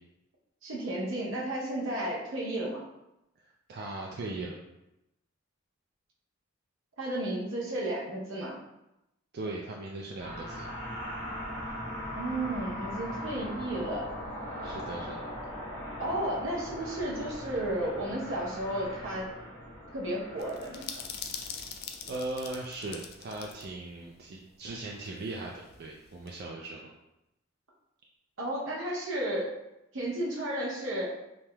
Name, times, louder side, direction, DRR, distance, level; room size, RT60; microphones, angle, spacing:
voice 1, 0.6-2.8 7.0-8.6 12.2-14.1 16.0-19.3 19.9-21.0 28.4-29.5 29.9-31.1, right 1 dB, 70° right, -5 dB, 0.8 m, -33 dB
voice 2, 3.7-4.6 9.3-10.7 14.6-15.3 22.1-26.9, right 2 dB, 50° right, -2 dB, 0.3 m, -38 dB
sound 1, 10.2-22.9, equal, 65° left, 1.2 m, -40 dB
sound 2, 20.4-23.7 23.9-24.0 25.0-26.4, left 6 dB, 50° left, 0.3 m, -42 dB
3.2 x 2.8 x 2.2 m, 0.89 s
head